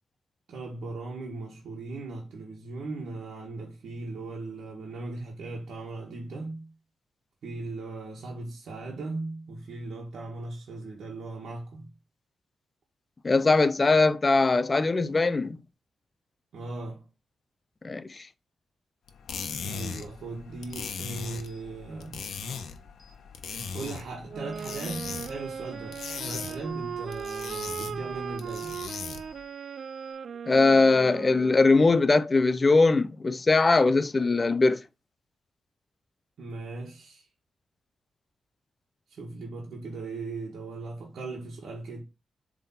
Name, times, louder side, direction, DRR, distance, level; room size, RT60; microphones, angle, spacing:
voice 1, 0.5-6.7 7.4-11.9 16.5-17.1 19.6-22.2 23.7-28.8 36.4-37.3 39.1-42.0, right 3 dB, 75° right, 1.5 m, -38 dB
voice 2, 13.2-15.6 17.8-18.3 30.5-34.8, left 3 dB, 25° left, 0.5 m, -21 dB
sound 1, 19.1-29.4, left 6 dB, 80° left, 1.1 m, -39 dB
sound 2, 21.5-21.6 22.2-22.4 23.0-23.2 23.8-23.9 24.5-24.7 25.1-30.1, left 6 dB, 15° right, 2.0 m, -58 dB
sound 3, 24.3-32.1, right 7 dB, 60° right, 0.3 m, -38 dB
7.6 x 3.6 x 4.2 m
wide cardioid pair, 145°, 0 cm